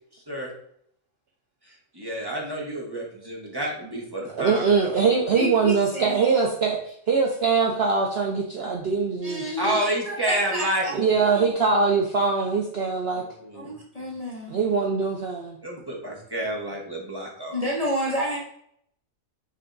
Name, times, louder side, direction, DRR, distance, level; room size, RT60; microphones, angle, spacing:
voice 1, 1.7-4.9 9.6-11.1 13.2-13.7 15.6-17.6, right 1 dB, 20° right, -2 dB, 0.8 m, -29 dB
voice 2, 4.3-6.8 7.1-9.8 10.9-13.2 14.5-15.6, right 5 dB, 60° right, 0 dB, 0.7 m, -22 dB
voice 3, 5.3-6.5 9.2-9.8 10.0-11.4 13.5-14.6 17.5-18.4, equal, 35° left, -3 dB, 0.7 m, -30 dB
5.8 x 3.4 x 2.5 m, 0.69 s
omnidirectional pair, 1.4 m